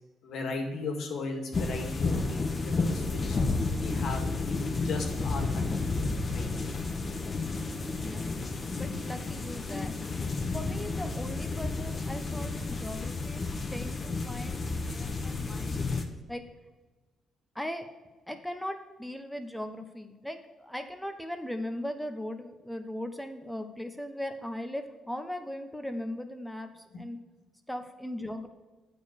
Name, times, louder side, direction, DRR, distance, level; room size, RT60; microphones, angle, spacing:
voice 1, 0.2-3.4 3.7-5.9 6.3-6.5 26.9-27.0, left 3 dB, 70° left, 3 dB, 2.0 m, -37 dB
sound 1, 1.5-16.0, left 3 dB, 35° left, 1.4 m, -31 dB
voice 2, 8.0-8.5 8.8-10.0 10.5-16.4 17.5-17.9 18.3-27.2 27.7-28.5, left 1 dB, 5° left, 7 dB, 1.2 m, -39 dB
9.0 x 5.3 x 6.6 m, 1.2 s
cardioid pair, 90°, 0 cm